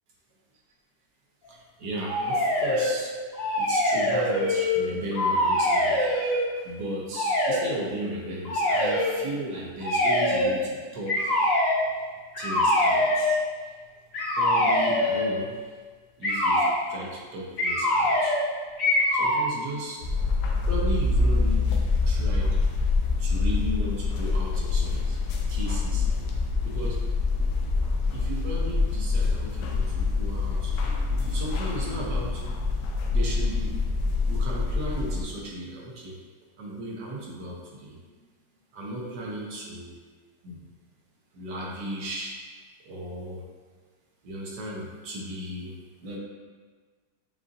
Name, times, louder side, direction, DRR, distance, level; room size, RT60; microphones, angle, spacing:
voice 1, 1.5-3.1 3.6-11.4 12.4-13.4 14.4-15.5 16.2-18.3 19.1-20.0 20.6-21.7 22.0-22.6 23.2-25.2 25.5-26.1 26.6-27.0 28.1-32.4 33.1-33.8 34.3-36.2 36.6-38.0 38.7-39.9 40.4-40.7 41.3-42.4 42.9-43.4 44.2-46.2, right 1 dB, 80° right, -3 dB, 1.4 m, -36 dB
sound 1, 2.0-2.9 3.3-4.8 5.1-6.4 7.1-7.6 8.4-9.1 9.8-10.5 11.1-11.8 12.3-13.3 14.1-15.3 16.2-16.7 17.6-18.4 18.8-19.4, left 1 dB, 55° left, 1.3 m, -23 dB
Allen Gardens Old Man Sneeze, 20.0-35.2, left 3 dB, 90° left, 1.2 m, -25 dB
6.8 x 2.6 x 2.5 m, 1.5 s
omnidirectional pair, 1.8 m